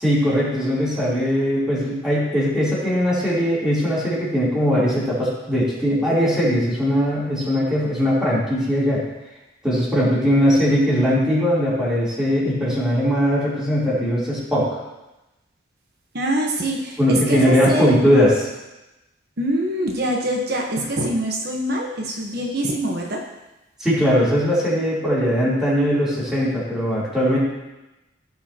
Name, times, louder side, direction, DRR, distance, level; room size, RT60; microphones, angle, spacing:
voice 1, 0.0-9.0 9.6-14.7 17.0-18.3 23.8-27.4, equal, 5° right, -10 dB, 3.3 m, -20 dB
voice 2, 16.1-18.0 19.4-23.3, right 1 dB, 50° right, 0 dB, 1.1 m, -24 dB
16.0 x 5.5 x 2.9 m, 1.0 s
head